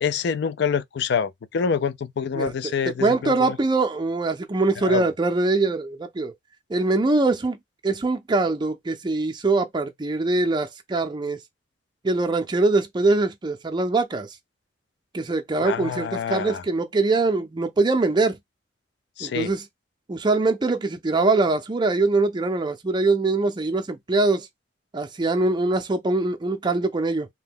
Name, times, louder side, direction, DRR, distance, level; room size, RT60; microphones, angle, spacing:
voice 1, 0.0-3.6 4.8-5.1 15.6-16.6 19.2-19.5, left 6 dB, 65° left, 0.4 m, -26 dB
voice 2, 2.3-6.3 6.7-7.6 7.8-11.4 12.0-14.3 15.1-18.4 19.2-19.7 20.1-24.5 24.9-27.3, right 3 dB, 25° right, 0.5 m, -23 dB
2.9 x 2.2 x 3.5 m
head